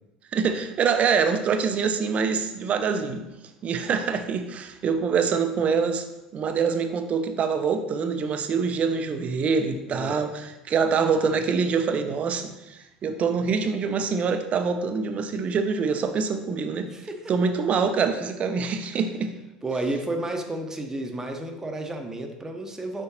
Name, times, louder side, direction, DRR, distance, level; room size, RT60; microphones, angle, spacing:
voice 1, 0.3-3.2 3.6-6.1 6.3-16.9 17.3-19.3, right 5 dB, 40° right, 8 dB, 0.6 m, -25 dB
voice 2, 9.9-10.2 16.9-17.3 19.6-23.0, right 2 dB, 15° right, 4 dB, 0.9 m, -31 dB
6.4 x 5.4 x 3.0 m, 0.96 s
figure-of-eight pair, 65°, 4 cm